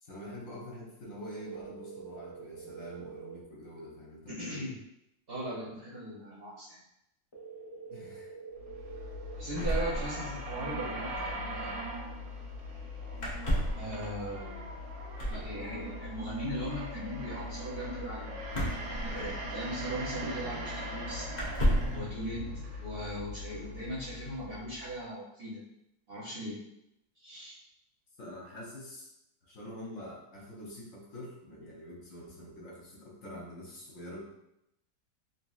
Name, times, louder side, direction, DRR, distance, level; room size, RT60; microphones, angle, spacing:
voice 1, 0.0-4.4 7.9-8.3 10.4-10.5 19.0-19.2 28.2-29.1 29.4-34.2, equal, 65° left, -4 dB, 1.0 m, -45 dB
sound 1, 1.3-3.3 7.3-9.3, right 6 dB, 30° left, 0.6 m, -46 dB
voice 2, 4.3-4.7 5.3-6.8 9.4-11.8 13.7-14.6 15.3-18.3 18.7-21.3 21.9-22.4 22.8-25.6 26.1-26.6 27.2-27.6, equal, 55° right, -8 dB, 0.7 m, -39 dB
sound 2, 8.6-24.9, equal, 80° right, 1.2 m, -40 dB
sound 3, 9.5-10.6 10.9-11.0 11.1-11.3 13.2-13.9 15.1-15.5 18.5-19.6 20.5-20.6 21.3-22.0, equal, 85° left, 0.4 m, -31 dB
3.1 x 2.7 x 2.3 m, 0.84 s
omnidirectional pair, 1.7 m